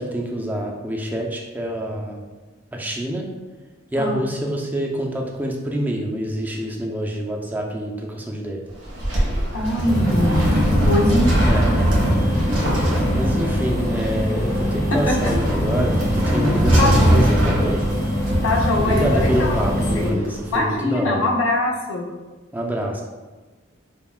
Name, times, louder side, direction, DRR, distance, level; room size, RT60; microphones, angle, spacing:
voice 1, 0.0-2.3 2.7-3.3 3.9-8.7 11.5-11.7 13.1-17.9 18.8-21.2 22.5-23.0, equal, 10° right, 0 dB, 0.4 m, -26 dB
sound 1, 8.7-20.6, equal, 85° right, 1.4 m, -21 dB
voice 2, 9.5-11.3 12.5-12.9 14.9-15.1 16.8-17.2 18.4-19.5 19.9-20.2 20.5-22.1, left 2 dB, 85° left, -1 dB, 0.7 m, -22 dB
sound 2, 9.8-20.1, equal, 15° left, 0.7 m, -25 dB
5.5 x 2.2 x 2.3 m, 1.2 s
head